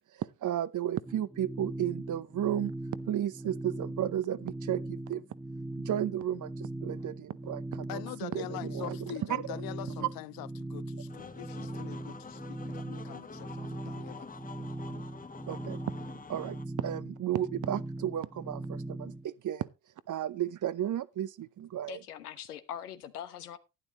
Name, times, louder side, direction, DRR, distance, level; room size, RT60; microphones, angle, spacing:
voice 1, 0.1-2.7 3.1-5.2 5.8-9.6 15.5-15.8 16.3-19.7 20.1-22.0, right 11 dB, 40° right, 0.9 m, -33 dB
sound 1, 1.1-19.3, right 2 dB, 5° right, 1.2 m, -40 dB
voice 2, 7.9-14.3, left 18 dB, 50° left, 0.5 m, -43 dB
sound 2, 11.1-16.6, left 5 dB, 20° left, 1.0 m, -47 dB
voice 3, 21.9-23.6, left 10 dB, 85° left, 1.1 m, -42 dB
11.5 x 11.5 x 3.0 m
hypercardioid pair, 50°, 45 cm